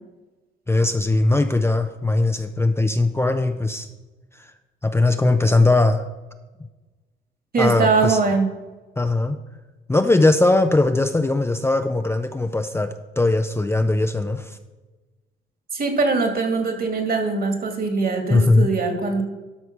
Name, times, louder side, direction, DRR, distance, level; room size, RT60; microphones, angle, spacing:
voice 1, 0.7-3.9 4.4-4.5 4.8-6.0 7.6-8.2 9.0-9.4 9.9-14.6 18.3-18.7, left 2 dB, 10° left, 7 dB, 0.6 m, -19 dB
voice 2, 7.5-8.5 15.7-19.2, right 4 dB, 50° right, 4 dB, 2.2 m, -22 dB
12.5 x 4.7 x 5.9 m, 1.2 s
cardioid pair, 90°, 20 cm